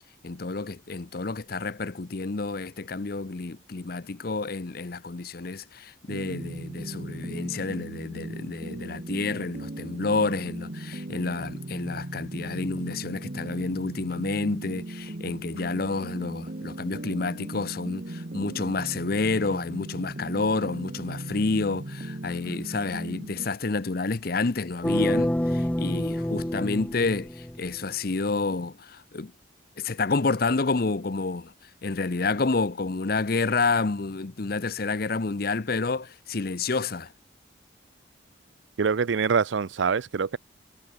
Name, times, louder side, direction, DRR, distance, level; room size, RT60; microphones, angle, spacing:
voice 1, 0.2-29.3 29.8-31.5 31.8-37.1, left 3 dB, 50° left, 0.7 m, -29 dB
sound 1, 6.1-23.5, right 1 dB, 45° right, 1.2 m, -38 dB
sound 2, 24.8-27.8, equal, 5° left, 0.5 m, -27 dB
voice 2, 38.8-40.4, right 5 dB, 75° right, 0.5 m, -24 dB
head